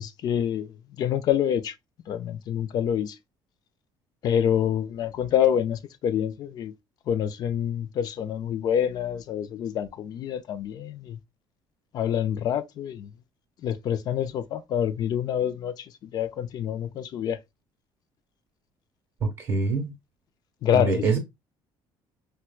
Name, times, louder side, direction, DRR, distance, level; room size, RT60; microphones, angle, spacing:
voice 1, 0.0-1.7 2.1-3.2 4.2-6.7 7.1-11.2 11.9-13.1 13.6-17.4 20.6-21.0, left 9 dB, 45° left, 0.4 m, -27 dB
voice 2, 19.2-19.9 20.7-21.2, right 4 dB, 25° right, 1.0 m, -25 dB
4.3 x 2.1 x 2.2 m
cardioid pair, 165°, 10 cm